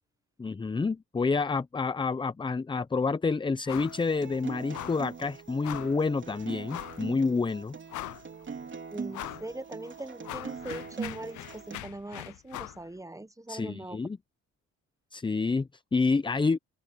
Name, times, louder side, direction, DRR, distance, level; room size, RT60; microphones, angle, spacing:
voice 1, 0.4-7.8 13.5-14.2 15.1-16.6, left 4 dB, 15° left, 0.6 m, -28 dB
sound 1, 3.7-4.0 4.3-4.4 4.7-5.1 5.6-6.0 6.7-7.0 7.5-7.6 7.9-8.4 9.1-9.5 9.9-12.8, left 17 dB, 75° left, 0.5 m, -41 dB
Acoustic guitar, 3.7-11.8, right 5 dB, 40° right, 3.4 m, -42 dB
voice 2, 8.9-14.0, right 1 dB, 10° right, 1.0 m, -41 dB
open air
cardioid pair, 90°, 30 cm